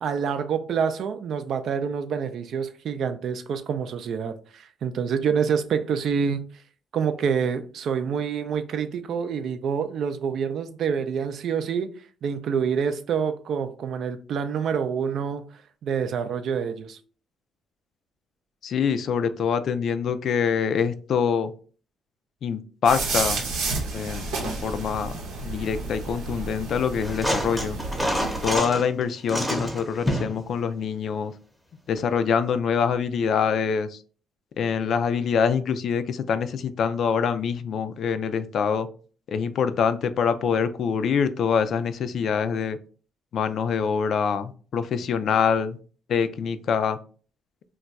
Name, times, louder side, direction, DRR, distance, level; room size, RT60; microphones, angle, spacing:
voice 1, 0.0-6.4 6.9-11.9 12.2-15.5 15.8-17.0, right 6 dB, 70° right, 0.3 m, -27 dB
voice 2, 18.6-21.5 22.4-23.4 23.9-27.8 28.4-31.3 31.9-34.0 34.6-38.9 39.3-42.8 43.3-45.8 46.1-47.0, left 6 dB, 65° left, 0.3 m, -25 dB
sound 1, 22.8-28.6, right 3 dB, 90° right, 0.7 m, -31 dB
sound 2, 27.0-28.9 29.3-30.4 32.0-32.1, equal, ahead, 0.7 m, -27 dB
2.3 x 2.2 x 3.9 m
cardioid pair, 90°, 0 cm